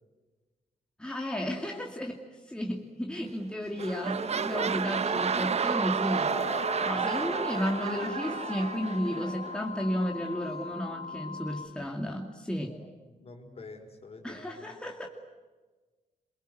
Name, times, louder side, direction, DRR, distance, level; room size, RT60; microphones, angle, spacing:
voice 1, 1.0-2.2 2.5-6.3 6.9-12.7 14.2-15.1, equal, 5° left, 0 dB, 2.5 m, -33 dB
sound 1, 3.2-3.5 3.7-9.6 10.2-10.3, right 6 dB, 45° right, 1.1 m, -31 dB
sound 2, 6.3-11.7, left 5 dB, 70° left, 4.6 m, -40 dB
voice 2, 12.7-14.7, left 3 dB, 45° left, 5 dB, 5.1 m, -48 dB
28.0 x 23.0 x 8.0 m, 1.3 s
wide cardioid pair, 160°, 15 cm